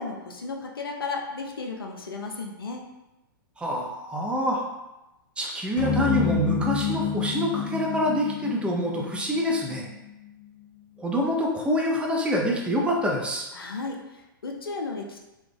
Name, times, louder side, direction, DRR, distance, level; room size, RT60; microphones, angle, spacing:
voice 1, 0.0-2.8 13.5-15.2, left 3 dB, 80° left, 2 dB, 0.6 m, -34 dB
voice 2, 3.6-4.6 5.4-9.9 11.0-13.5, equal, 10° right, -1 dB, 0.5 m, -26 dB
sound 1, 5.8-10.1, left 6 dB, 40° left, 0.7 m, -29 dB
3.3 x 2.3 x 3.4 m, 0.98 s
figure-of-eight pair, 110°, 12 cm